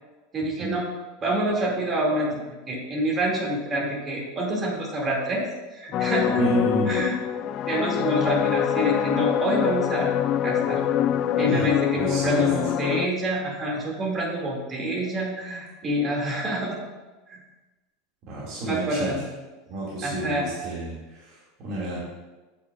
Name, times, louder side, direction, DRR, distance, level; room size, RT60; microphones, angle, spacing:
voice 1, 0.3-0.8 1.2-5.4 5.7-6.4 6.9-7.1 7.7-10.1 10.4-10.8 11.4-16.8 17.3-17.4 18.6-19.2 20.0-20.5, right 1 dB, 30° right, -2 dB, 2.5 m, -27 dB
sound 1, 5.9-13.1, left 10 dB, 45° left, 0.3 m, -25 dB
voice 2, 6.3-7.0 11.5-12.4 18.3-19.2 19.7-22.0, right 1 dB, 50° right, -7 dB, 2.3 m, -30 dB
8.1 x 8.0 x 2.5 m, 1.2 s
hypercardioid pair, 85°, 0 cm